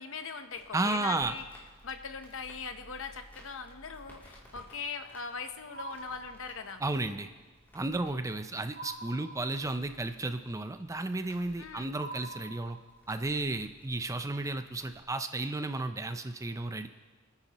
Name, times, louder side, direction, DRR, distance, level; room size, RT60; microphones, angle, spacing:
voice 1, 0.0-1.4 1.8-6.8 11.6-11.9, left 5 dB, 65° left, 8 dB, 0.9 m, -40 dB
Crackle, 0.5-15.0, equal, 10° left, 2.9 m, -58 dB
voice 2, 0.7-1.4 6.8-7.3 7.7-12.8 13.1-16.9, right 2 dB, 15° right, 9 dB, 0.5 m, -33 dB
sound 1, 5.7-7.0 8.7-10.0 12.0-13.2, right 2 dB, 40° right, 1.2 m, -45 dB
25.5 x 9.7 x 3.0 m, 1.3 s
head